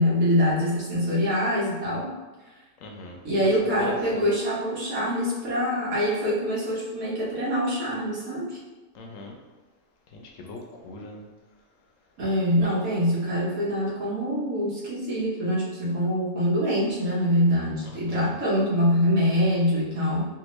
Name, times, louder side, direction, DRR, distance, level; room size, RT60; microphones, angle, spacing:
voice 1, 0.0-2.1 3.2-8.6 12.2-20.3, equal, 80° right, -7 dB, 1.5 m, -24 dB
voice 2, 2.8-3.2 3.8-4.0 8.9-9.4 10.1-11.3 17.9-18.3, left 2 dB, 70° left, 1 dB, 0.9 m, -39 dB
3.4 x 2.5 x 3.0 m, 1.2 s
omnidirectional pair, 1.5 m